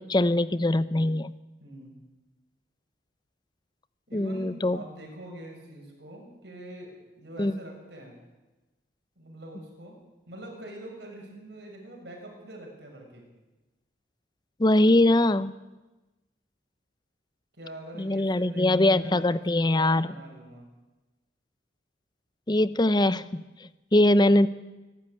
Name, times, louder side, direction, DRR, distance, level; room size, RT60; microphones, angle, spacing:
voice 1, 0.0-1.3 4.1-4.8 7.4-7.5 14.6-15.5 18.0-20.1 22.5-24.5, left 1 dB, 25° left, 16 dB, 0.6 m, -22 dB
voice 2, 1.6-2.0 4.1-8.1 9.1-10.0 10.3-13.2 17.5-20.7, right 1 dB, 60° right, 1 dB, 6.9 m, -44 dB
24.5 x 12.5 x 9.7 m, 1.1 s
head